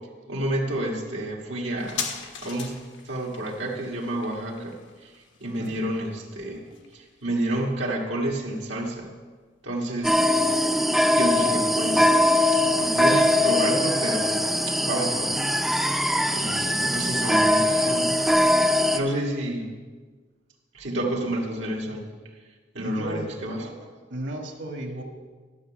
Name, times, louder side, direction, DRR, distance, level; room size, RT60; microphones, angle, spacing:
voice 1, 0.3-2.1 2.4-2.7 3.0-9.1 9.6-10.2 11.2-12.1 12.5-18.5 18.9-19.7 20.7-22.1 22.7-23.9, right 1 dB, 90° right, -2 dB, 1.7 m, -30 dB
sound 1, 1.8-8.9 9.1-9.2, left 6 dB, 85° left, 1.3 m, -40 dB
sound 2, 10.0-19.0, left 1 dB, ahead, 0.4 m, -21 dB
voice 2, 22.8-23.3 24.1-25.0, right 1 dB, 70° right, 3 dB, 1.6 m, -34 dB
12.0 x 5.5 x 7.5 m, 1.4 s
head